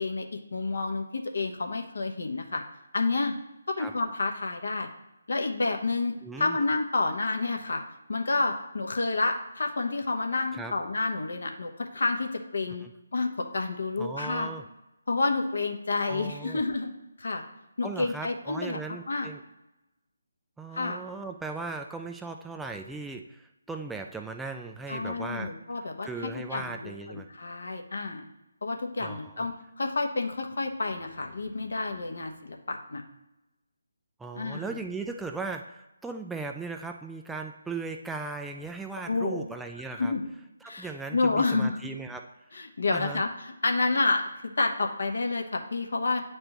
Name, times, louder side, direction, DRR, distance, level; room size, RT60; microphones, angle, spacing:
voice 1, 0.0-2.6 2.9-3.3 3.7-4.9 5.3-7.8 8.1-12.8 13.1-14.5 15.1-16.9 17.2-17.4 17.8-18.8 19.1-19.3 20.7-21.0 24.9-28.3 28.6-33.0 34.3-34.8 39.1-39.4 39.9-40.3 40.6-41.8 42.5-46.2, left 3 dB, 65° left, 3 dB, 1.0 m, -29 dB
voice 2, 6.2-6.6 10.5-10.7 12.8-12.9 14.0-14.6 16.1-16.6 17.8-19.4 20.6-25.5 26.0-27.3 29.0-29.5 34.2-40.1 40.6-42.3 42.9-43.2, right 3 dB, 5° right, 3 dB, 0.3 m, -38 dB
9.5 x 3.3 x 3.0 m, 0.95 s
figure-of-eight pair, 150°, 0 cm